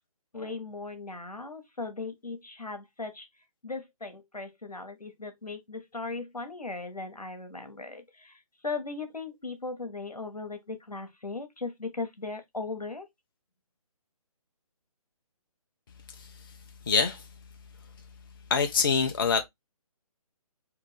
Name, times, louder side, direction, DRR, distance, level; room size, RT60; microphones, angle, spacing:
voice 1, 0.3-3.3 3.6-13.1, left 3 dB, 90° left, 1.0 m, -38 dB
voice 2, 16.9-17.2 18.5-19.4, left 5 dB, 35° left, 0.4 m, -25 dB
3.5 x 2.5 x 3.2 m
figure-of-eight pair, 145°, 19 cm